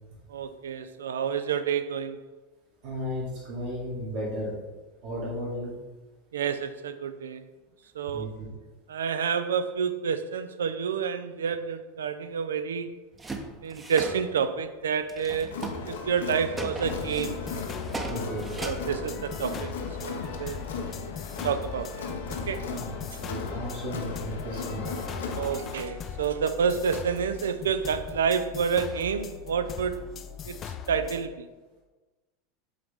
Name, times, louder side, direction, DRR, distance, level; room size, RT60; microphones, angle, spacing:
voice 1, 0.3-2.2 6.3-7.4 7.9-8.3 8.9-13.0 13.6-17.4 18.6-19.7 20.0-20.7 21.4-22.7 25.3-30.1 30.5-31.5, right 6 dB, 70° right, 12 dB, 0.4 m, -29 dB
voice 2, 2.8-4.5 5.0-5.7 8.1-8.5 18.0-18.5 22.6-22.9 23.2-24.9, equal, 55° right, -6 dB, 2.0 m, -34 dB
sound 1, 13.1-14.4 15.1-15.9 16.2-18.7, right 2 dB, 20° right, 0.8 m, -37 dB
Crowd, 15.5-25.7, left 4 dB, 70° left, 0.7 m, -37 dB
sound 2, 16.8-31.3, left 7 dB, 35° left, 0.4 m, -40 dB
7.8 x 4.0 x 3.5 m, 1.2 s
figure-of-eight pair, 80°, 0 cm